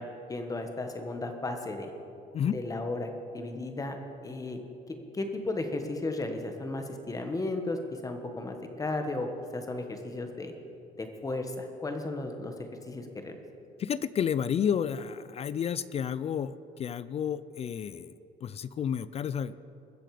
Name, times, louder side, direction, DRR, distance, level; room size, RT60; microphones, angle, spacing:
voice 1, 0.0-1.9 2.5-4.0 4.2-4.6 4.9-9.3 9.5-10.5 11.0-12.5 12.9-13.4, left 2 dB, 20° left, 5 dB, 1.4 m, -34 dB
voice 2, 13.8-19.5, left 8 dB, 40° left, 16 dB, 0.4 m, -31 dB
21.5 x 7.6 x 5.0 m, 2.8 s
cardioid pair, 110°, 17 cm